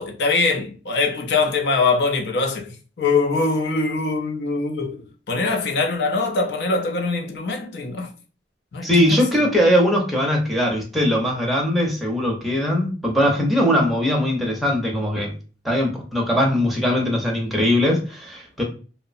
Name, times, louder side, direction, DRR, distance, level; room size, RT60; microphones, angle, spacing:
voice 1, 0.0-5.0 5.3-8.1 8.7-9.4, left 3 dB, 65° left, 0.5 m, -23 dB
voice 2, 8.8-15.3 15.6-18.6, equal, ahead, 0.6 m, -20 dB
2.8 x 2.1 x 2.5 m
head